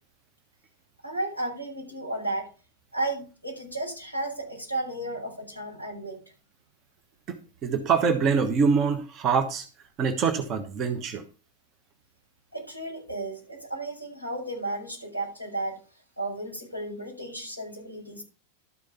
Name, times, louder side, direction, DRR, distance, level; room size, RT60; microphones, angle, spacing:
voice 1, 1.0-2.5 2.9-6.2 12.5-15.8 16.2-18.2, right 2 dB, 90° right, 5.6 m, -33 dB
voice 2, 7.6-9.7 10.0-11.2, right 5 dB, 35° right, 1.1 m, -24 dB
12.5 x 5.1 x 6.8 m
figure-of-eight pair, 90°, 0 cm